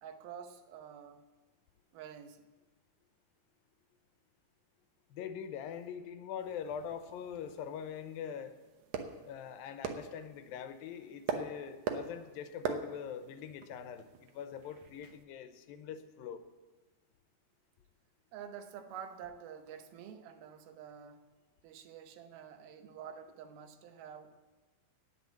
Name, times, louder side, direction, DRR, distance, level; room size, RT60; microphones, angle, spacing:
voice 1, 0.0-1.2 1.9-2.5 18.3-21.3 21.6-24.4, right 8 dB, 85° right, 2.8 m, -48 dB
voice 2, 5.1-8.6 9.3-16.4, left 8 dB, 85° left, 2.5 m, -43 dB
sound 1, 6.4-15.2, right 6 dB, 70° right, 2.0 m, -43 dB
9.6 x 9.4 x 8.3 m
omnidirectional pair, 4.2 m